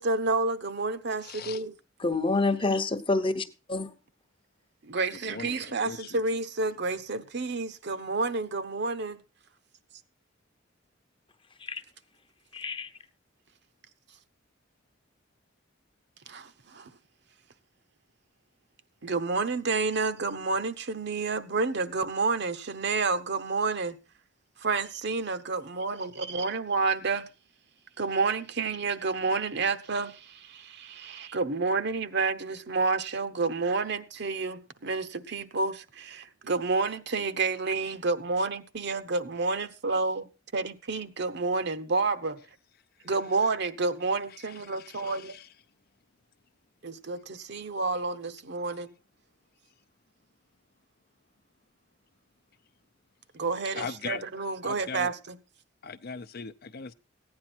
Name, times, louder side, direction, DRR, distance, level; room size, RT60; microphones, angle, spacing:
voice 1, 0.0-1.7 4.8-9.2 16.3-16.9 19.0-24.0 24.6-27.3 28.0-40.3 40.5-42.4 43.0-45.4 46.8-48.9 53.3-55.4, right 3 dB, 60° right, 0.9 m, -29 dB
voice 2, 1.2-1.6 5.3-6.2 44.8-45.4 53.8-54.2 54.6-55.1 55.8-56.9, left 5 dB, 55° left, 0.6 m, -39 dB
voice 3, 2.0-3.4 3.7-3.9 11.6-11.8 12.5-12.9, left 3 dB, 25° left, 0.9 m, -27 dB
15.5 x 9.7 x 4.4 m
head